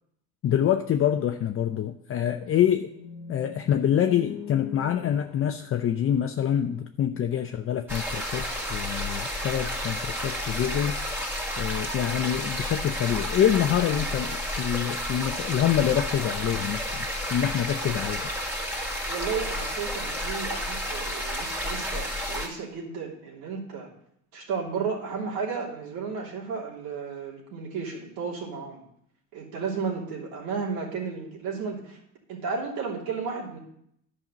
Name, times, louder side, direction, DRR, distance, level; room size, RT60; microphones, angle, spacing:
voice 1, 0.4-2.9 3.3-11.0 11.6-18.2, left 10 dB, 40° left, 6 dB, 0.6 m, -26 dB
sound 1, 2.7-6.8, left 7 dB, 75° left, 1.3 m, -43 dB
sound 2, 7.9-22.5, equal, 5° right, 2.2 m, -31 dB
voice 2, 19.1-23.9 24.3-28.8 29.3-32.0 32.3-33.6, right 5 dB, 80° right, -2 dB, 3.3 m, -33 dB
10.5 x 5.5 x 7.2 m, 0.72 s
cardioid pair, 110°, 36 cm